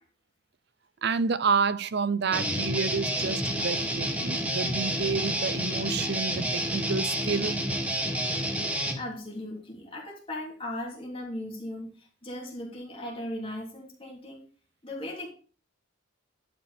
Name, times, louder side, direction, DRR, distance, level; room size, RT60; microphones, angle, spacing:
voice 1, 1.0-7.6, right 5 dB, 55° right, 0.5 m, -29 dB
Guitar, 2.3-9.0, right 1 dB, 5° right, 1.2 m, -29 dB
voice 2, 9.0-14.4 14.8-15.3, left 1 dB, 25° left, 3.3 m, -37 dB
11.5 x 5.1 x 5.1 m
head